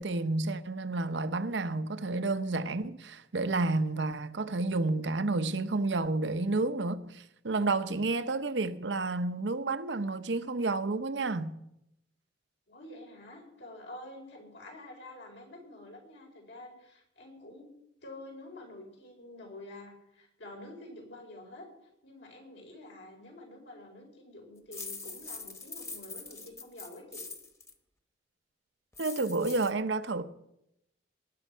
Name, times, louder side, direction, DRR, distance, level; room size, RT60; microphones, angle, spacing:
voice 1, 0.0-11.6 29.0-30.2, right 3 dB, 75° right, 0.8 m, -30 dB
voice 2, 12.7-17.7 18.0-21.7 22.0-27.2, left 1 dB, 80° left, 4.7 m, -48 dB
sound 1, 24.7-27.7 28.9-29.7, left 3 dB, 15° left, 1.1 m, -43 dB
18.5 x 9.4 x 5.6 m
head